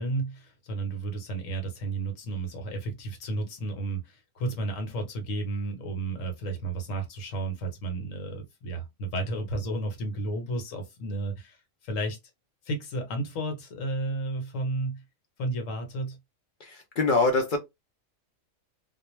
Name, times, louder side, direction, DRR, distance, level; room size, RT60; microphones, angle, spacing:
voice 1, 0.0-11.6 11.8-12.2 12.6-15.0 15.4-16.2, right 2 dB, 70° left, 1.2 m, -32 dB
voice 2, 16.6-17.6, left 3 dB, 55° left, 0.5 m, -24 dB
2.4 x 2.2 x 3.0 m
omnidirectional pair, 1.4 m